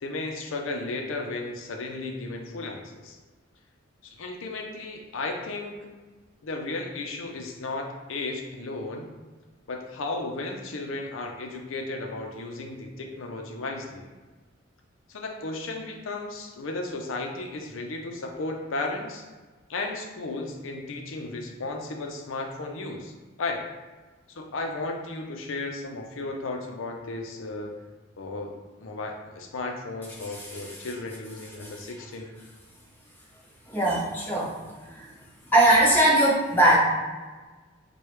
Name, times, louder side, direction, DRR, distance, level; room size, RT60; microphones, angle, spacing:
voice 1, 0.0-3.2 4.0-5.9 6.4-9.1 9.7-14.1 15.1-19.3 19.7-23.1 23.4-23.6 24.3-27.7 28.2-32.3, left 2 dB, 80° left, 2 dB, 0.5 m, -34 dB
voice 2, 30.2-30.7 31.6-31.7 33.7-34.5 34.8-35.1 35.5-36.8, right 1 dB, 10° left, -7 dB, 1.0 m, -21 dB
4.6 x 2.3 x 3.1 m, 1.3 s
head